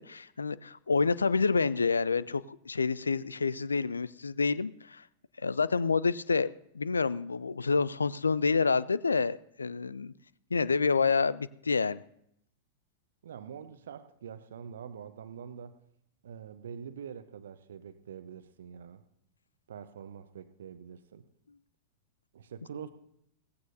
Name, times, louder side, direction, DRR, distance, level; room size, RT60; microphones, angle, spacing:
voice 1, 0.0-5.0 5.4-10.1 10.5-12.0, left 4 dB, 80° left, 19 dB, 0.4 m, -28 dB
voice 2, 13.2-15.8 16.2-19.0 19.7-21.2 22.3-22.9, right 7 dB, 65° right, 12 dB, 0.9 m, -45 dB
17.0 x 15.5 x 2.7 m, 0.73 s
figure-of-eight pair, 95°, 0 cm